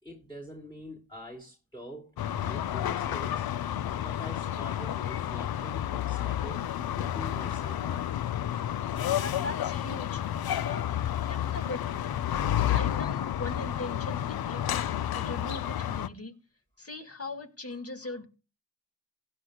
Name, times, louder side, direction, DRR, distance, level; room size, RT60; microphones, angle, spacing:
voice 1, 0.0-3.5 4.0-8.0 18.0-18.2, equal, 10° left, 2.9 m, -45 dB
sound 1, 2.2-16.1, left 11 dB, 65° left, 0.6 m, -31 dB
voice 2, 9.2-10.9 11.3-12.1 12.6-16.3 16.8-18.2, left 2 dB, 35° left, 2.0 m, -40 dB
16.0 x 10.0 x 2.3 m
supercardioid pair, 40°, 40 cm